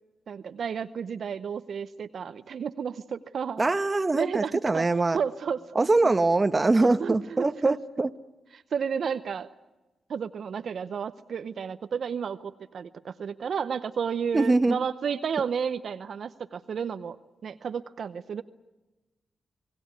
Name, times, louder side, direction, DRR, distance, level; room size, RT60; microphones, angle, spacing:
voice 1, 0.3-3.6 4.1-4.9 5.1-6.1 7.0-7.8 8.5-9.5 10.1-17.2 17.4-18.4, right 7 dB, 70° right, 11 dB, 0.8 m, -32 dB
voice 2, 3.6-5.2 5.7-8.1 14.3-14.8, right 3 dB, 30° right, 11 dB, 1.0 m, -23 dB
27.5 x 18.0 x 9.5 m, 1.1 s
supercardioid pair, 50°, 0 cm